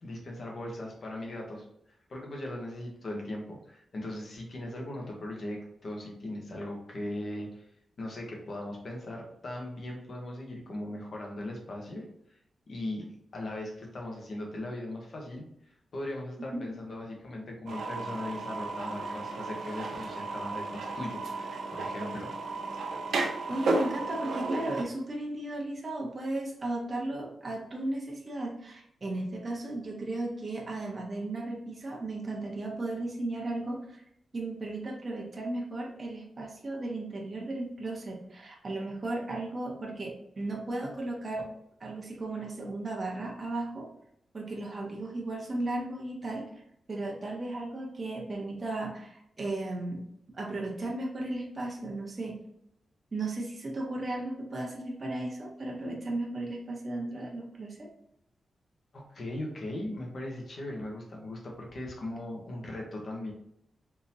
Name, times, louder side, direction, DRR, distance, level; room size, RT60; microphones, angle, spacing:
voice 1, 0.0-1.6 2.1-7.7 8.0-12.1 12.7-13.1 13.3-15.4 15.9-22.3 58.9-63.3, left 1 dB, 50° left, -1 dB, 1.0 m, -39 dB
sound 1, 17.7-24.8, right 3 dB, 80° right, 0.5 m, -33 dB
voice 2, 23.5-34.0 34.3-41.4 41.8-43.9 44.3-46.5 46.9-50.1 50.3-52.4 53.1-57.9, right 2 dB, 30° right, -2 dB, 0.8 m, -35 dB
3.8 x 2.8 x 2.7 m, 0.75 s
wide cardioid pair, 150°, 0 cm